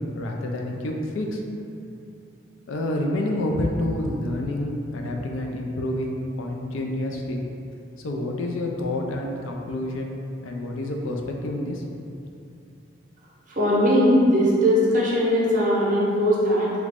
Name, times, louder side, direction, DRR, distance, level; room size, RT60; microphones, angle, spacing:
voice 1, 0.0-1.4 2.7-7.4 8.0-10.2 10.4-11.8, left 1 dB, 80° left, 1 dB, 0.4 m, -28 dB
voice 2, 13.5-16.7, equal, 40° right, -5 dB, 0.7 m, -20 dB
3.1 x 2.4 x 3.3 m, 2.6 s
head